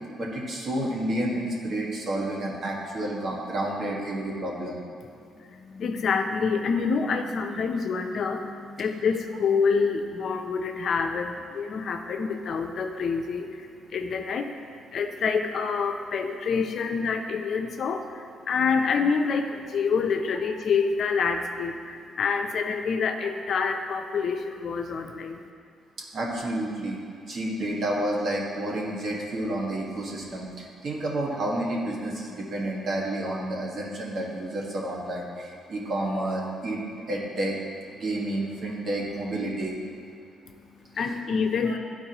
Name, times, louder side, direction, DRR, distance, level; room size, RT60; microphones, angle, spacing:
voice 1, 0.2-4.8 26.1-27.0 27.3-36.8 37.1-37.5 37.9-39.8 41.6-41.7, right 1 dB, 55° right, -3 dB, 1.6 m, -30 dB
voice 2, 5.5-25.4 40.5-41.8, left 5 dB, 60° left, 5 dB, 0.5 m, -27 dB
12.5 x 4.6 x 3.0 m, 2.4 s
cardioid pair, 90°, 0 cm